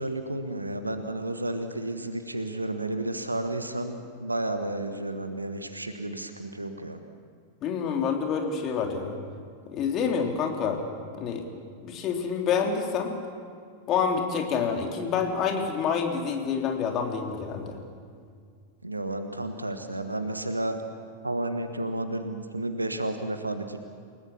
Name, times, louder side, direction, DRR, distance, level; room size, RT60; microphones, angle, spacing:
voice 1, 0.0-7.0 18.8-20.8 21.2-23.8, right 1 dB, 85° right, 8 dB, 1.4 m, -32 dB
voice 2, 7.6-9.2 9.7-10.8 11.2-11.4 11.8-13.1 13.9-17.8, left 6 dB, 35° left, 2 dB, 3.5 m, -27 dB
29.5 x 18.0 x 7.2 m, 2.1 s
figure-of-eight pair, 90°, 0 cm